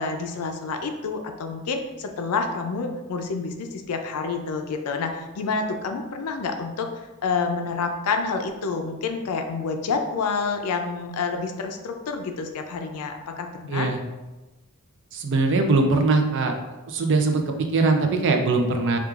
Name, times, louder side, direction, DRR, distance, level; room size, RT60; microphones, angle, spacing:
voice 1, 0.0-13.9, left 4 dB, 80° left, 5 dB, 0.4 m, -28 dB
voice 2, 13.7-14.0 15.1-16.5 16.9-19.0, right 3 dB, 55° right, 4 dB, 0.4 m, -21 dB
4.4 x 2.4 x 2.4 m, 1.1 s
head